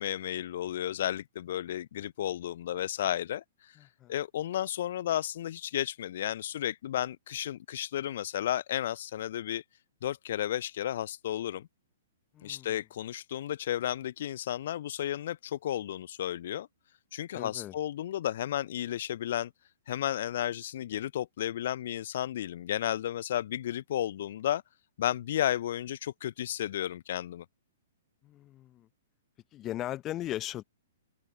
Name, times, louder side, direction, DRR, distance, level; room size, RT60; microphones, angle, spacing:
voice 1, 0.0-3.8 4.1-9.6 10.0-11.6 12.4-16.7 17.1-19.5 19.9-24.6 25.0-27.5, left 11 dB, 50° left, 0.5 m, -33 dB
voice 2, 3.8-4.1 12.3-12.7 17.3-17.7 28.2-28.9 29.5-30.6, left 13 dB, 25° left, 0.8 m, -38 dB
open air
figure-of-eight pair, 115°, 0 cm